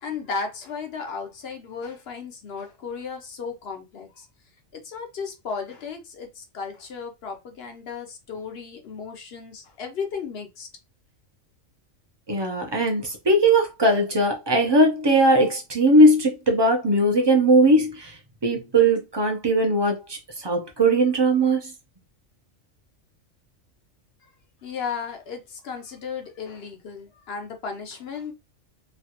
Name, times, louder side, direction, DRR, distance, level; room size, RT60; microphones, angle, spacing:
voice 1, 0.0-4.3 4.7-10.7 24.6-28.3, left 5 dB, 60° left, 0.8 m, -35 dB
voice 2, 12.3-18.2 18.4-21.7, right 1 dB, 35° right, 0.4 m, -19 dB
3.1 x 2.3 x 2.8 m
omnidirectional pair, 1.3 m